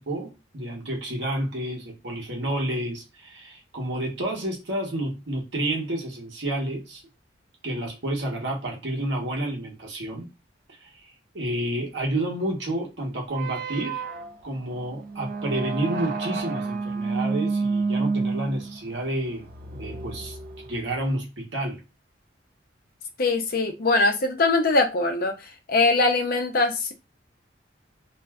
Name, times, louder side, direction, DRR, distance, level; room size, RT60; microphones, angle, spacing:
voice 1, 0.0-7.0 7.6-10.3 10.8-11.0 11.3-14.0 14.4-20.4 20.7-21.8, right 1 dB, 70° right, 1.0 m, -30 dB
sound 1, 13.3-21.1, right 4 dB, 50° right, 0.4 m, -30 dB
voice 2, 23.2-25.4 25.7-26.9, left 3 dB, 50° left, 0.6 m, -22 dB
2.5 x 2.3 x 3.3 m
head